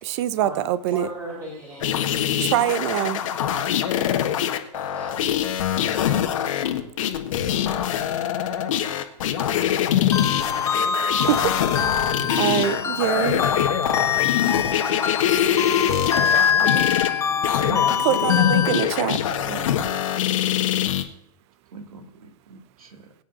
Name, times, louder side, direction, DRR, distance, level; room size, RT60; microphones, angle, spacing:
voice 1, 0.0-1.1 2.4-3.2 11.2-13.5 17.8-19.2, right 12 dB, 50° right, 17 dB, 0.8 m, -25 dB
voice 2, 0.9-2.0 2.4-2.5 4.0-4.3 4.7-5.2 5.6-6.0, right 1 dB, 15° right, -3 dB, 4.3 m, -37 dB
sound 1, 1.8-21.0, left 10 dB, 65° left, 1.5 m, -24 dB
sound 2, 10.1-18.8, left 7 dB, 15° left, 1.1 m, -24 dB
voice 3, 17.6-18.1 19.5-20.2 21.7-23.0, right 5 dB, 75° right, 5 dB, 2.3 m, -38 dB
22.0 x 9.1 x 2.6 m, 0.74 s
hypercardioid pair, 105°, 18 cm